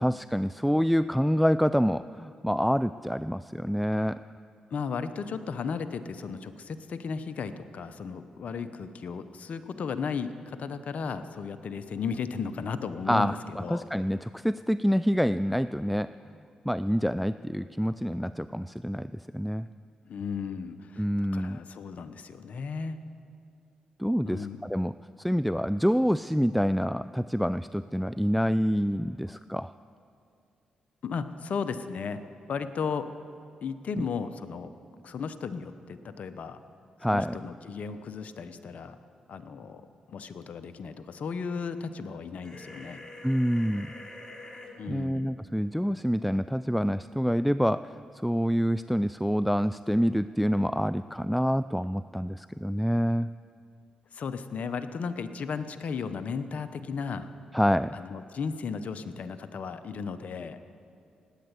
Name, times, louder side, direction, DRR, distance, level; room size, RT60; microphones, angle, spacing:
voice 1, 0.0-4.2 13.1-16.1 16.7-19.7 21.0-21.6 24.0-29.7 34.0-34.1 37.0-37.4 43.2-43.9 44.9-53.3 57.5-58.0, equal, ahead, 15 dB, 0.3 m, -27 dB
voice 2, 4.7-13.8 20.1-21.1 21.3-23.0 24.2-24.6 31.0-32.2 32.5-33.1 33.6-34.7 35.0-36.6 37.1-39.0 39.3-39.8 40.1-43.0 44.8-45.3 54.1-57.3 57.9-60.6, left 5 dB, 60° left, 10 dB, 0.8 m, -35 dB
sound 1, 42.4-44.7, left 1 dB, 30° left, 3.5 m, -45 dB
18.5 x 9.0 x 8.2 m, 2.4 s
supercardioid pair, 50°, 3 cm